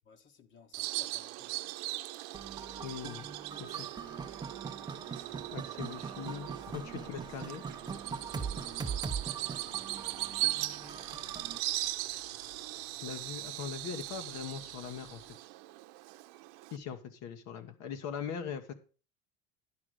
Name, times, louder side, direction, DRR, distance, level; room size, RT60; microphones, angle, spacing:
voice 1, 0.0-1.8 8.5-9.1, left 5 dB, 35° left, 1.3 m, -59 dB
Bird vocalization bird call bird song, 0.7-16.8, right 19 dB, 70° right, 0.8 m, -39 dB
sound 1, 2.3-11.6, right 5 dB, 10° right, 0.8 m, -41 dB
voice 2, 2.8-3.3 3.6-3.9 5.5-7.6 13.0-15.2 16.7-18.7, left 7 dB, 50° left, 1.2 m, -41 dB
sound 2, 8.0-15.4, left 4 dB, 75° left, 3.4 m, -58 dB
11.0 x 5.0 x 6.4 m
cardioid pair, 145°, 35 cm